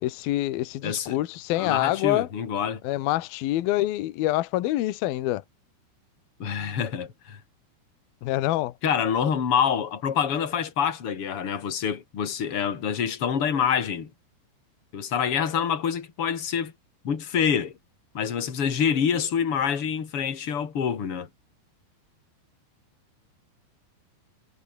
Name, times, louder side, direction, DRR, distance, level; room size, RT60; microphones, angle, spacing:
voice 1, 0.0-2.3 2.8-5.4 8.2-8.7, left 15 dB, 70° left, 2.6 m, -26 dB
voice 2, 0.8-1.2 1.5-2.8 6.4-7.4 8.8-14.1 14.9-16.7 17.0-17.7 18.1-21.3, left 7 dB, 35° left, 3.2 m, -26 dB
omnidirectional pair, 5.3 m